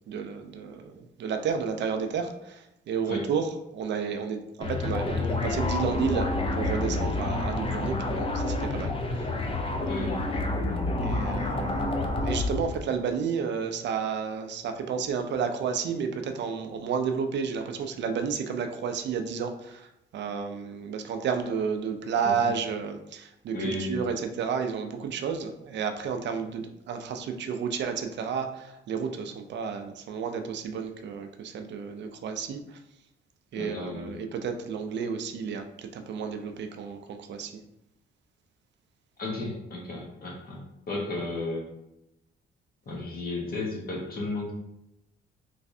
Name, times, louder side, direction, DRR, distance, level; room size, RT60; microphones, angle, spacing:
voice 1, 0.1-9.0 11.0-32.8 33.5-37.5, right 6 dB, 65° right, 6 dB, 0.5 m, -31 dB
sound 1, 4.6-12.8, left 2 dB, 30° left, 0.5 m, -28 dB
voice 2, 9.9-10.2 22.2-22.5 23.5-24.0 33.5-34.2 39.2-40.6 40.9-41.7 42.9-44.5, left 2 dB, 50° left, -2 dB, 1.2 m, -33 dB
3.3 x 3.1 x 2.6 m, 0.84 s
cardioid pair, 90°, 20 cm